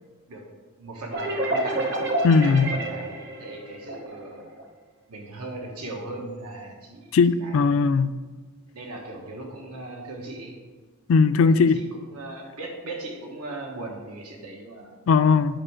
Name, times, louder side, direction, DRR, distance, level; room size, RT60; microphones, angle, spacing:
voice 1, 0.8-1.9 2.4-4.6 5.1-7.8 8.7-10.6 11.4-15.0, right 2 dB, 90° right, 1 dB, 1.3 m, -38 dB
sound 1, 1.1-4.6, right 1 dB, 50° right, 1.0 m, -29 dB
voice 2, 2.2-2.7 7.1-8.1 11.1-11.8 15.1-15.5, left 5 dB, 65° left, 13 dB, 0.3 m, -18 dB
10.0 x 4.4 x 5.0 m, 1.4 s
head